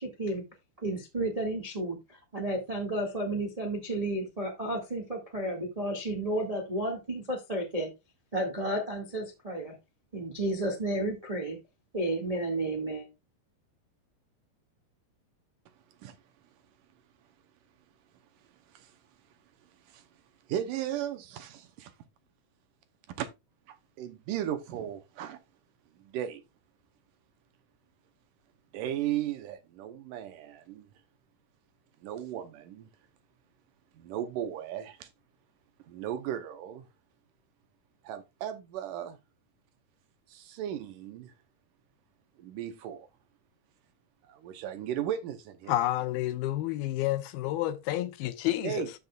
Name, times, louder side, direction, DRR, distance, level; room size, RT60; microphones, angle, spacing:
voice 1, 0.0-0.4 0.8-7.9 8.3-9.7 10.1-11.6 11.9-13.1, right 1 dB, 25° right, 0.8 m, -32 dB
voice 2, 20.5-21.9 23.2-23.3 24.0-25.4 26.1-26.4 28.7-30.8 32.0-32.9 34.0-35.1 35.9-36.8 38.1-39.2 40.3-41.3 42.4-43.1 44.4-45.7 48.6-48.9, right 10 dB, 75° right, 2.1 m, -35 dB
voice 3, 45.7-48.9, left 14 dB, 80° left, 2.5 m, -30 dB
13.5 x 5.4 x 2.4 m
omnidirectional pair, 4.4 m